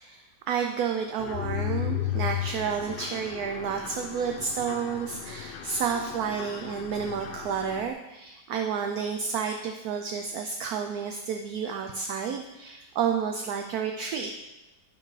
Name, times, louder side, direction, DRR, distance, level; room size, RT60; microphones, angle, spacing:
voice 1, 0.0-14.3, right 6 dB, 70° right, 4 dB, 0.9 m, -31 dB
Mechanisms, 1.2-7.9, left 11 dB, 90° left, 1.3 m, -35 dB
12.0 x 5.1 x 3.2 m, 1.0 s
omnidirectional pair, 2.0 m